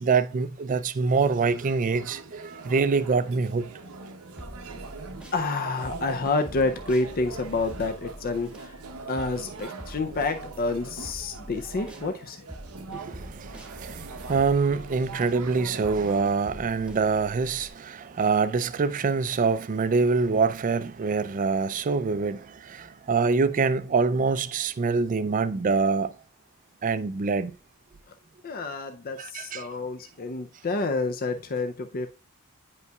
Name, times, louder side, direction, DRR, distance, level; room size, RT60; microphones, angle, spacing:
voice 1, 0.0-3.7 12.9-26.1 26.8-27.5 29.2-29.7, right 4 dB, 35° right, 0.4 m, -25 dB
sound 1, 1.1-16.2, right 4 dB, 80° right, 0.8 m, -42 dB
sound 2, 4.4-5.4 5.8-12.1 12.5-17.7, equal, 5° right, 1.0 m, -45 dB
voice 2, 5.3-8.8 9.1-12.4 28.4-32.1, left 3 dB, 40° left, 0.5 m, -29 dB
9.3 x 5.4 x 2.3 m
head